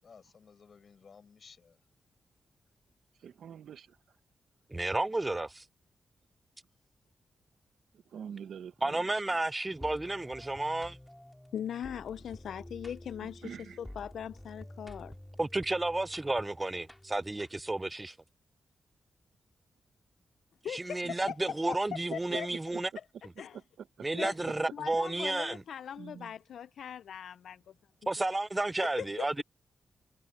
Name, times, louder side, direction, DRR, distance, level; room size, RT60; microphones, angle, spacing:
voice 1, 0.0-1.8, left 6 dB, 65° left, 5.8 m, -56 dB
voice 2, 3.2-3.9 8.1-8.9 13.4-13.7 26.0-26.3, right 8 dB, 85° right, 0.9 m, -44 dB
voice 3, 4.7-5.7 8.8-11.0 15.4-18.2 20.7-22.9 24.0-25.6 28.1-29.4, right 2 dB, 25° right, 0.4 m, -32 dB
sound 1, 9.8-17.9, left 1 dB, 10° left, 3.7 m, -50 dB
voice 4, 11.5-15.2 20.6-21.8 22.1-22.5 23.0-23.1 23.4-23.6 24.1-24.3 24.7-27.7 28.8-29.3, left 9 dB, 85° left, 0.4 m, -40 dB
cardioid pair, 55°, 0 cm